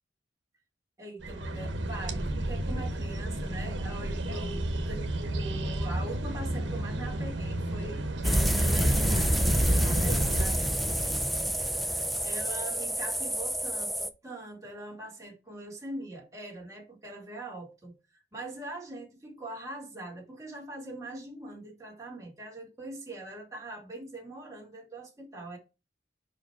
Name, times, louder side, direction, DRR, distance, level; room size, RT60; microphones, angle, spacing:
voice 1, 1.0-8.0 8.3-11.3 11.6-18.0 18.3-25.6, right 2 dB, 20° right, 2.3 m, -42 dB
sound 1, 1.2-10.5, right 1 dB, 85° right, 1.1 m, -33 dB
sound 2, 8.2-14.1, equal, ahead, 0.5 m, -27 dB
5.1 x 4.9 x 5.8 m
head